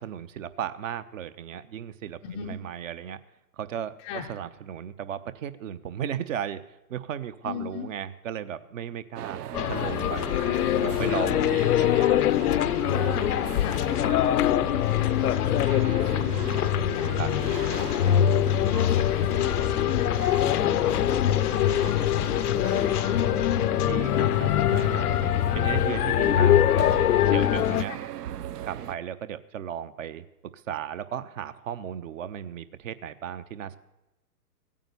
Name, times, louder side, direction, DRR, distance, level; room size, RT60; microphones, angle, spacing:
voice 1, 0.0-3.2 3.6-4.0 4.3-6.6 6.9-10.4 10.8-12.2 17.2-17.3 23.8-26.9 27.3-28.0 28.6-30.3 30.5-33.8, right 9 dB, 50° right, 13 dB, 1.0 m, -35 dB
voice 2, 2.2-2.6 4.0-4.3 7.4-7.9 10.4-10.9 11.3-11.7 12.9-16.3 16.7-18.2 18.6-20.2 20.6-22.9 27.9-28.0, left 7 dB, 15° left, 2 dB, 0.4 m, -38 dB
sound 1, 9.2-29.0, right 11 dB, 70° right, 0.7 m, -39 dB
sound 2, 9.5-27.8, left 11 dB, 65° left, 0.6 m, -23 dB
16.0 x 9.0 x 6.9 m, 0.95 s
hypercardioid pair, 120°, 48 cm